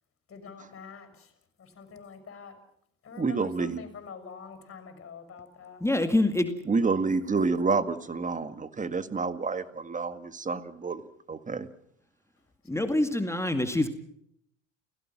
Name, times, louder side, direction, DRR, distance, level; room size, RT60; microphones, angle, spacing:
voice 1, 0.3-1.3 1.6-2.6 3.0-5.8, left 5 dB, 35° left, 9 dB, 6.4 m, -46 dB
voice 2, 3.2-3.8 6.7-11.0 11.3-11.7, right 4 dB, 20° right, 12 dB, 1.9 m, -28 dB
voice 3, 5.8-6.5 12.7-13.9, left 1 dB, 5° left, 7 dB, 2.2 m, -25 dB
29.5 x 17.5 x 6.1 m, 0.71 s
hypercardioid pair, 70°, 39 cm